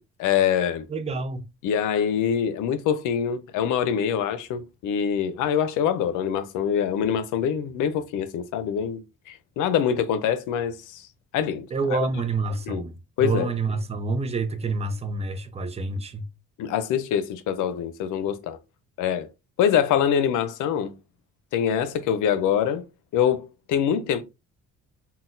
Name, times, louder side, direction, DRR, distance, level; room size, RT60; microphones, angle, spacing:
voice 1, 0.2-0.9 1.6-11.1 11.3-12.0 12.7-12.8 13.2-13.5 16.6-18.6 19.0-19.3 19.6-20.9 21.5-22.8 23.1-24.2, left 8 dB, 85° left, 0.5 m, -24 dB
voice 2, 0.9-1.5 11.7-16.3, right 3 dB, 20° right, 0.5 m, -28 dB
3.9 x 2.2 x 2.6 m
cardioid pair, 90°, 30 cm